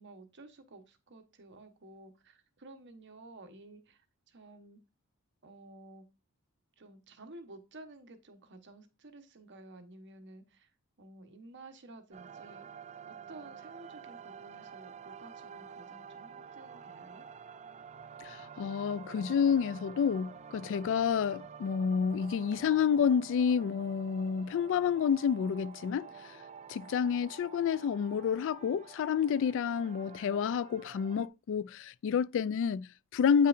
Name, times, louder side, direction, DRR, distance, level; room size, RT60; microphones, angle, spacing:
voice 1, 0.0-4.8 5.4-6.0 6.8-10.7 11.0-12.7 13.1-17.2, right 2 dB, 55° right, 1.1 m, -53 dB
sound 1, 12.1-31.3, right 7 dB, 30° right, 0.4 m, -49 dB
voice 2, 18.2-26.3 26.7-33.5, left 7 dB, 60° left, 0.3 m, -29 dB
8.7 x 5.5 x 2.5 m
head